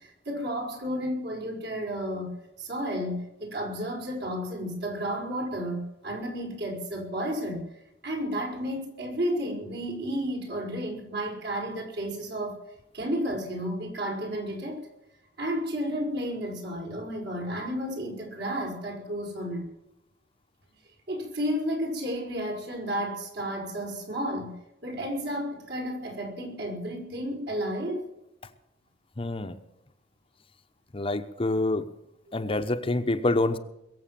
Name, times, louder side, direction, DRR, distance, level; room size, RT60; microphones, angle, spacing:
voice 1, 0.0-7.7 8.0-12.6 12.9-14.8 15.4-19.7 21.1-28.1, equal, 60° right, 0 dB, 5.4 m, -32 dB
voice 2, 29.2-29.6 30.9-31.9 32.3-33.6, left 2 dB, 30° left, 8 dB, 0.9 m, -26 dB
22.0 x 7.8 x 7.6 m, 0.87 s
head